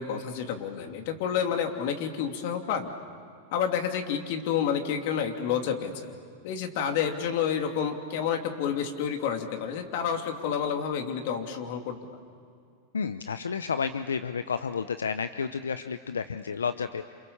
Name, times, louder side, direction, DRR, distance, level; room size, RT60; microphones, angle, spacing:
voice 1, 0.0-2.9 3.5-6.1 6.4-12.0, left 8 dB, 60° left, 4 dB, 3.0 m, -29 dB
voice 2, 12.9-17.0, left 6 dB, 90° left, 10 dB, 0.7 m, -31 dB
28.5 x 28.0 x 7.2 m, 2.4 s
hypercardioid pair, 100°, 0 cm